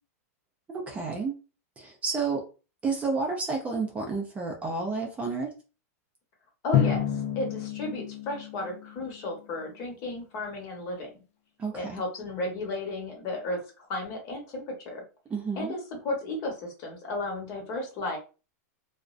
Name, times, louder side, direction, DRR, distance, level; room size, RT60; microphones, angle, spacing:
voice 1, 0.7-1.3 1.8-2.5 2.8-5.5 11.6-12.0 15.3-15.7, right 4 dB, 15° right, 1 dB, 0.4 m, -30 dB
voice 2, 6.6-11.1 11.7-15.0 15.6-18.2, left 2 dB, 40° left, 1 dB, 1.1 m, -34 dB
Drum, 6.7-9.4, left 10 dB, 55° left, 0.5 m, -29 dB
2.4 x 2.1 x 2.4 m, 0.32 s
supercardioid pair, 135°, 9 cm